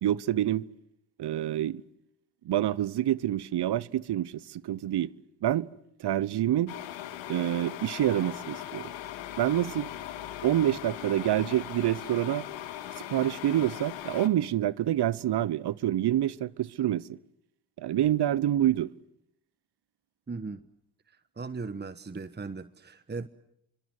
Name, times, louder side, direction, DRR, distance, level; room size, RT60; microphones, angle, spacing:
voice 1, 0.0-0.6 1.2-1.8 2.4-5.1 5.4-5.7 6.0-6.7 7.3-8.9 9.4-9.9 10.4-12.5 13.1-17.1 17.8-18.9, right 12 dB, 60° right, 1.0 m, -27 dB
sound 1, 6.7-14.3, left 12 dB, 80° left, 2.0 m, -39 dB
voice 2, 20.3-20.6 21.1-23.3, right 4 dB, 20° right, 1.2 m, -38 dB
26.5 x 25.0 x 7.8 m
hypercardioid pair, 40°, 45 cm